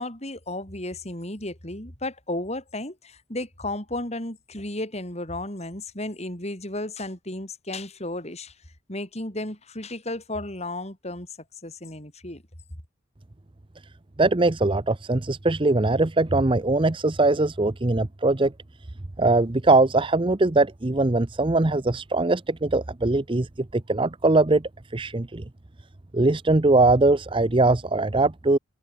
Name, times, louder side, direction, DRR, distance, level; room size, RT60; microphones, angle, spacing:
voice 1, 0.0-8.5 8.9-11.3 11.6-12.4, left 1 dB, 35° left, 6.8 m, -33 dB
voice 2, 14.2-18.5 19.2-25.4 26.1-28.6, right 2 dB, 25° right, 0.7 m, -21 dB
head